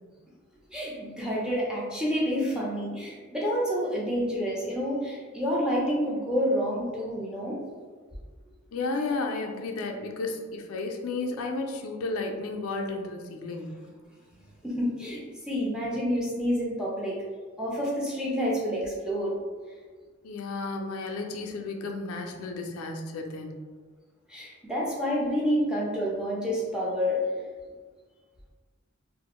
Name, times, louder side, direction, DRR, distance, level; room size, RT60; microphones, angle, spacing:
voice 1, 0.7-7.6 14.6-17.2 17.6-19.4 24.3-27.2, equal, 5° right, -5 dB, 0.4 m, -28 dB
voice 2, 8.7-13.8 20.2-23.6, left 3 dB, 85° left, 3 dB, 0.4 m, -33 dB
2.4 x 2.0 x 2.9 m, 1.5 s
head